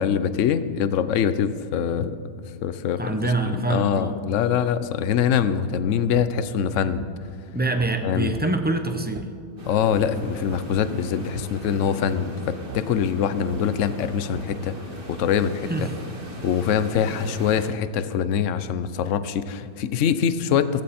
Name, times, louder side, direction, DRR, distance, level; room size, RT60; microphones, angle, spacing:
voice 1, 0.0-2.2 2.6-3.2 3.4-7.0 8.0-8.3 9.7-14.7 15.1-15.7 16.4-20.8, left 8 dB, 60° left, 13 dB, 0.9 m, -24 dB
voice 2, 3.0-4.1 7.5-9.3 15.7-15.9, right 2 dB, 15° right, 5 dB, 0.4 m, -25 dB
sound 1, 6.1-6.3 7.0-7.1 7.8-7.9 8.3-8.5 9.1-9.3 10.0-10.1 10.5-10.7 11.3-11.5 12.1-12.3 12.7-12.8 13.5-13.6 14.3-14.5, right 9 dB, 60° right, 0.7 m, -39 dB
sound 2, 9.6-17.7, right 2 dB, 35° right, 2.1 m, -38 dB
16.0 x 15.5 x 4.3 m, 2.5 s
omnidirectional pair, 1.7 m